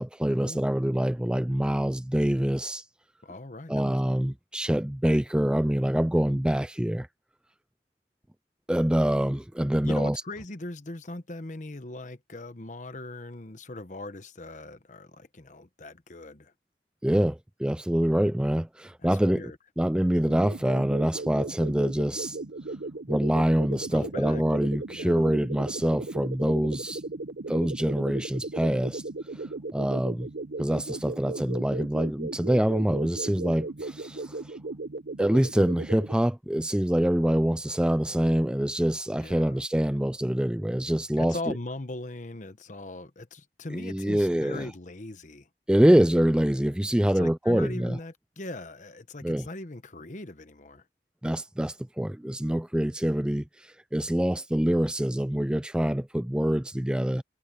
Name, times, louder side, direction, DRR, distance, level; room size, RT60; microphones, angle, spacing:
voice 1, 0.0-2.8 3.7-7.1 8.7-10.2 17.0-19.4 19.8-22.4 23.1-27.0 27.5-29.0 29.3-30.3 30.6-34.6 35.2-41.5 43.7-44.7 45.7-48.0 49.2-49.5 51.2-57.2, equal, 5° right, 0.3 m, -25 dB
voice 2, 3.2-4.0 9.8-16.5 19.0-19.6 23.8-25.3 39.2-39.7 41.2-45.5 47.1-50.8, left 2 dB, 45° left, 1.1 m, -40 dB
sound 1, 20.3-36.1, right 2 dB, 75° right, 1.0 m, -37 dB
head